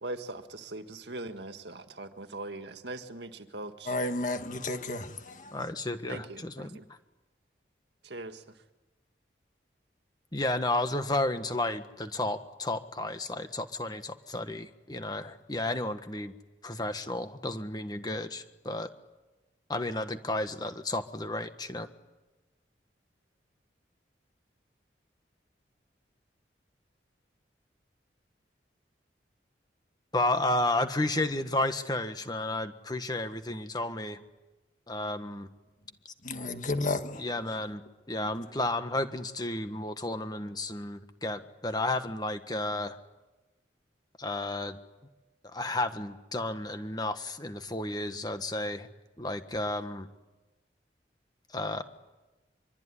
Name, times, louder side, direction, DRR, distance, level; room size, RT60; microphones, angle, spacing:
voice 1, 0.0-4.0 6.1-6.9 8.0-8.4, right 2 dB, 70° right, 1.8 m, -41 dB
voice 2, 3.9-5.5 36.2-37.3, left 2 dB, 45° left, 1.8 m, -32 dB
voice 3, 5.5-6.8 10.3-16.3 16.6-18.9 19.7-21.9 30.1-34.2 34.9-35.5 37.1-37.8 38.1-43.0 44.2-44.8 45.5-48.9 49.2-50.1 51.5-51.8, left 2 dB, 20° left, 1.5 m, -32 dB
24.5 x 24.0 x 10.0 m
head